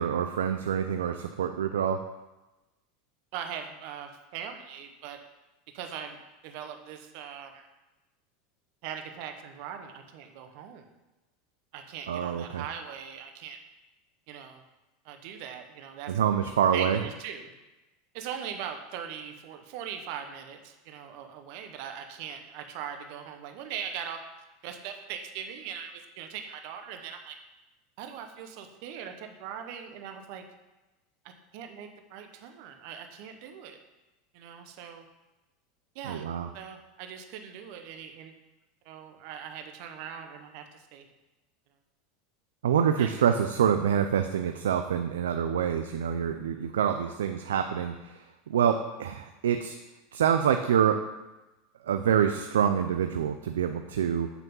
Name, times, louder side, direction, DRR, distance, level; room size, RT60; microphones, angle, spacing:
voice 1, 0.0-2.1 12.1-12.6 16.1-17.0 36.0-36.5 42.6-48.2 48.5-49.8 50.1-51.0 51.8-54.3, right 8 dB, 90° right, 7 dB, 0.4 m, -26 dB
voice 2, 3.3-5.2 5.7-7.7 8.8-10.9 11.7-13.6 14.3-14.6 15.0-17.5 18.1-24.2 24.6-27.4 28.0-30.4 31.2-33.8 34.3-35.0 35.9-36.3 36.5-38.3 38.8-41.1 43.0-43.1, right 8 dB, 65° right, 6 dB, 0.9 m, -40 dB
8.1 x 3.6 x 5.4 m, 1.1 s
hypercardioid pair, 105°, 0 cm